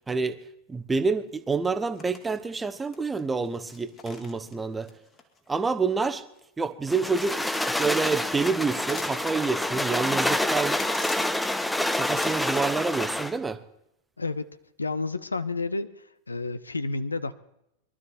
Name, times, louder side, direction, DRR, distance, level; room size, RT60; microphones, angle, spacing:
voice 1, 0.1-0.4 0.7-4.9 5.5-6.2 6.6-7.5 7.8-10.8 11.9-13.6, right 4 dB, 10° right, 11 dB, 1.0 m, -28 dB
sound 1, 1.3-1.4 1.7-2.4 2.6-5.9 6.9-12.6, left 5 dB, 30° left, 2.3 m, -45 dB
sound 2, 6.9-13.4, left 1 dB, 5° left, 0.7 m, -27 dB
voice 2, 14.8-15.9 16.3-17.3, left 3 dB, 80° left, 15 dB, 0.7 m, -30 dB
23.0 x 12.5 x 4.3 m, 0.82 s
figure-of-eight pair, 90°, 0 cm